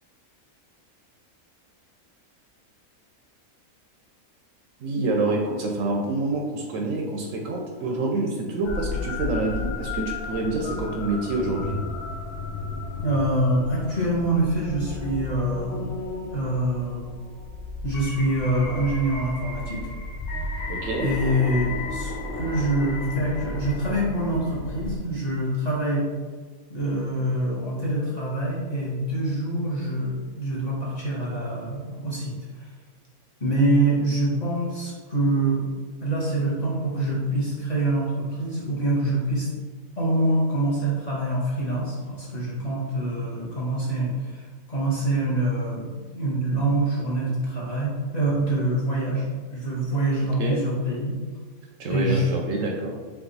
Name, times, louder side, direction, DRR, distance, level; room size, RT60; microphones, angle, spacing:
voice 1, 4.8-11.8 20.7-21.1 50.4-50.6 51.8-53.0, right 2 dB, 70° right, 1 dB, 0.9 m, -27 dB
sound 1, 8.6-25.0, left 3 dB, 65° left, 0.8 m, -33 dB
voice 2, 13.0-15.9 16.3-17.1 17.8-19.8 21.0-26.0 26.7-32.7 33.4-35.6 36.0-39.5 40.0-51.2 51.8-52.3, right 1 dB, 30° left, -7 dB, 1.0 m, -25 dB
3.5 x 3.3 x 4.0 m, 1.5 s
omnidirectional pair, 1.6 m